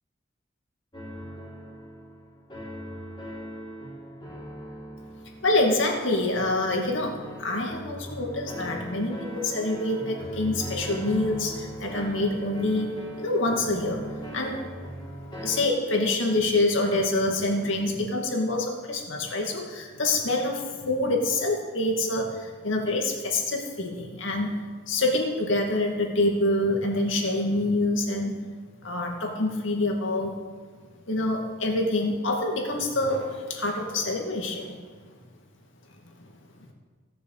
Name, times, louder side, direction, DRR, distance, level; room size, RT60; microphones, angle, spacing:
sound 1, 0.9-15.7, equal, 25° left, 2.9 m, -39 dB
voice 1, 5.4-12.9 13.2-14.0 14.3-14.6 15.4-24.6 24.9-28.4 28.8-30.4 31.1-34.7, left 2 dB, 70° left, 1 dB, 2.2 m, -26 dB
16.5 x 7.1 x 6.6 m, 1.5 s
head